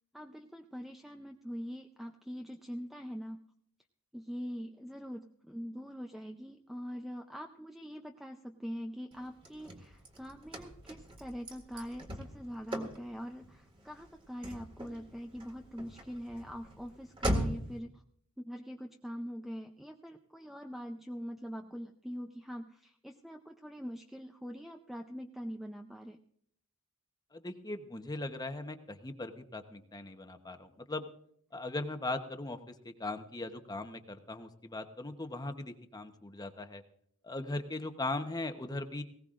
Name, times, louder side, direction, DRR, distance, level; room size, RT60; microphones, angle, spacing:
voice 1, 0.1-3.4 4.1-18.0 18.4-26.2, equal, ahead, 4 dB, 0.5 m, -43 dB
Car / Slam, 9.1-17.8, equal, 25° right, 1.9 m, -40 dB
voice 2, 27.3-31.1 31.5-32.6 32.8-36.8 37.2-39.0, left 2 dB, 20° left, 7 dB, 0.9 m, -39 dB
19.5 x 17.5 x 2.5 m, 0.67 s
head